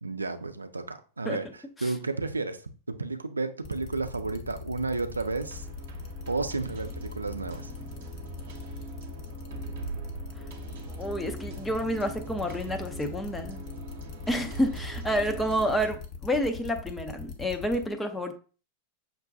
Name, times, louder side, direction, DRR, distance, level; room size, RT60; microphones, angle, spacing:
voice 1, 0.0-2.6 2.9-5.7 6.3-7.7, right 3 dB, 80° right, 0.4 m, -32 dB
sound 1, 3.6-17.9, left 6 dB, 40° left, 0.9 m, -42 dB
sound 2, 5.2-15.9, right 3 dB, 55° right, 0.8 m, -41 dB
voice 2, 11.0-13.6 14.3-18.4, equal, 10° left, 0.5 m, -29 dB
5.9 x 2.2 x 2.6 m
figure-of-eight pair, 90°, 0 cm